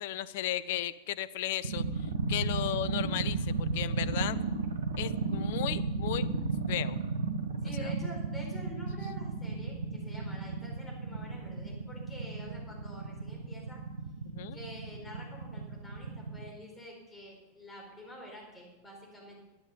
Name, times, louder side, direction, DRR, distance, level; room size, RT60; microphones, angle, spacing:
voice 1, 0.0-4.4 5.0-6.3 6.7-7.0 7.8-7.9 14.3-14.6, left 13 dB, 50° left, 16 dB, 0.5 m, -35 dB
sound 1, 1.6-16.5, right 4 dB, 70° right, 1.2 m, -33 dB
voice 2, 7.6-13.8 14.5-19.5, equal, 15° left, -1 dB, 4.5 m, -48 dB
12.5 x 10.5 x 5.4 m, 1.1 s
figure-of-eight pair, 90°, 0 cm